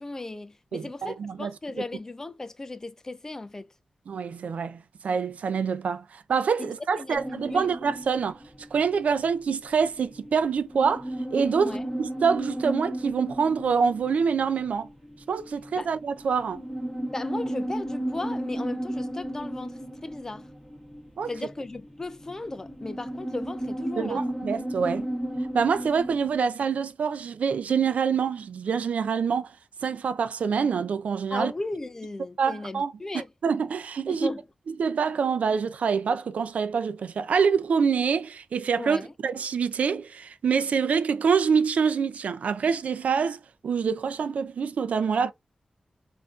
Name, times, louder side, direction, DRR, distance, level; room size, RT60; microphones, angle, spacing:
voice 1, 0.0-3.7 6.6-7.7 11.6-11.8 15.8-15.9 17.1-20.5 21.3-24.2 31.3-33.3 34.1-34.4 38.8-39.1, left 2 dB, 20° left, 0.3 m, -36 dB
voice 2, 0.7-1.5 4.1-8.4 8.7-11.0 11.3-14.9 15.3-16.6 21.2-21.3 24.0-25.1 25.5-29.5 29.8-31.5 32.4-32.9 33.4-34.3 34.8-45.3, right 6 dB, 80° right, 0.4 m, -26 dB
sound 1, 7.1-26.4, right 1 dB, ahead, 1.5 m, -34 dB
5.6 x 2.6 x 2.4 m
wide cardioid pair, 165°, 2 cm